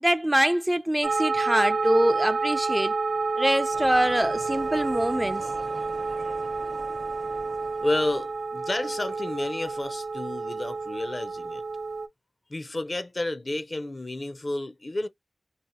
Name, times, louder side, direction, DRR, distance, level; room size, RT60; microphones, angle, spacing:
voice 1, 0.0-2.9 3.4-5.4, right 1 dB, 15° right, 0.3 m, -24 dB
sound 1, 1.0-12.1, right 4 dB, 90° right, 0.4 m, -29 dB
sound 2, 3.7-8.5, right 2 dB, 60° right, 0.8 m, -44 dB
voice 2, 5.7-6.1 6.6-6.7 7.5-7.6 7.8-11.6 12.5-15.1, left 1 dB, 45° left, 0.5 m, -31 dB
2.8 x 2.0 x 2.9 m
cardioid pair, 45°, 0 cm